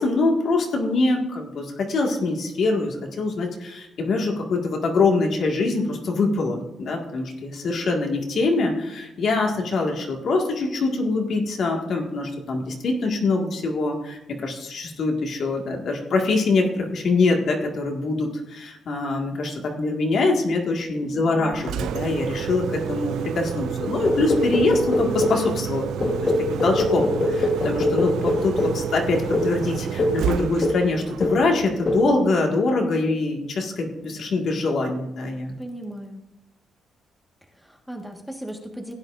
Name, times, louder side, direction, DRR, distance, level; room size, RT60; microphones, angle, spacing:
voice 1, 0.0-35.5, left 3 dB, 60° left, 1 dB, 1.8 m, -24 dB
voice 2, 21.0-21.6 35.6-36.2 37.5-38.9, equal, ahead, 1 dB, 1.5 m, -37 dB
Engine, 21.5-32.5, right 10 dB, 80° right, 0.3 m, -30 dB
sound 1, 24.0-25.5 26.0-28.8 29.3-29.6 30.0-30.3 30.6-30.9 31.2-31.5 31.9-32.1, left 2 dB, 35° left, 1.3 m, -23 dB
16.0 x 9.6 x 2.6 m, 0.90 s
cardioid pair, 100°, 0 cm